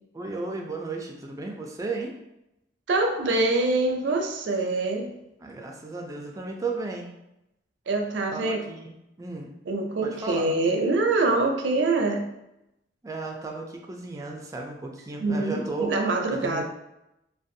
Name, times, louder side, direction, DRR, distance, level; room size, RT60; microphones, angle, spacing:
voice 1, 0.1-2.1 5.4-7.1 8.3-9.5 10.0-10.5 13.0-15.9 16.3-16.6, right 3 dB, 20° right, 1 dB, 0.3 m, -34 dB
voice 2, 2.9-5.1 7.9-8.6 9.7-12.3 15.2-16.6, right 2 dB, 80° right, 3 dB, 0.4 m, -25 dB
2.5 x 2.2 x 2.6 m, 0.87 s
head